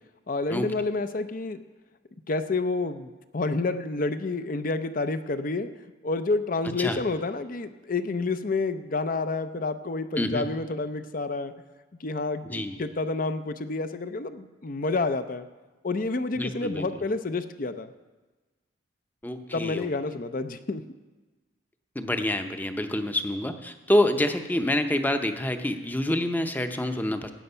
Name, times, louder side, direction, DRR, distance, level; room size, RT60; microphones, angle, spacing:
voice 1, 0.3-1.6 2.3-5.7 6.0-11.5 12.0-15.5 15.8-17.9 19.5-20.8, left 3 dB, 45° left, 10 dB, 0.6 m, -29 dB
voice 2, 10.2-10.5 12.5-12.8 16.3-16.9 19.2-19.9 21.9-27.3, left 1 dB, 10° left, 7 dB, 0.7 m, -27 dB
16.5 x 8.9 x 5.6 m, 1.2 s
head